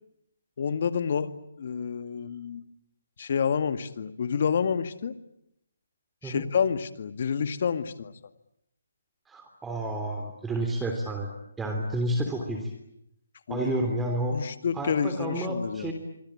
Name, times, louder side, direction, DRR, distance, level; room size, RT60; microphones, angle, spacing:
voice 1, 0.6-1.3 1.6-2.6 3.2-5.1 6.2-8.1 13.5-13.7 14.3-15.9, left 6 dB, 50° left, 11 dB, 2.1 m, -28 dB
voice 2, 9.3-11.3 11.6-12.7 13.5-14.4 14.7-15.9, right 1 dB, 5° right, 3 dB, 3.2 m, -30 dB
26.0 x 25.5 x 8.8 m, 0.76 s
hypercardioid pair, 160°, 0 cm